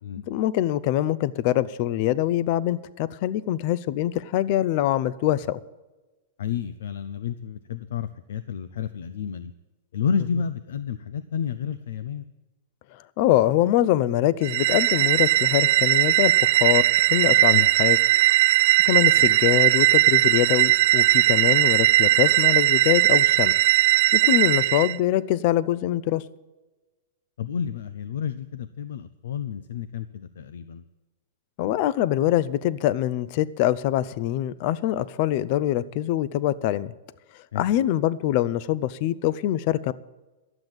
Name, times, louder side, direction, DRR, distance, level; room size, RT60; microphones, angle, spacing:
voice 1, 0.3-5.6 13.2-18.0 18.8-23.5 24.1-26.2 31.6-36.9 37.5-39.9, left 13 dB, 40° left, 19 dB, 0.4 m, -24 dB
voice 2, 6.4-9.5 9.9-12.2 17.5-17.7 27.4-30.8 37.5-37.8, left 7 dB, 80° left, 13 dB, 0.6 m, -30 dB
sound 1, 14.4-24.9, right 16 dB, 45° right, 0.3 m, -19 dB
12.0 x 7.9 x 8.9 m, 1.1 s
supercardioid pair, 170°, 0 cm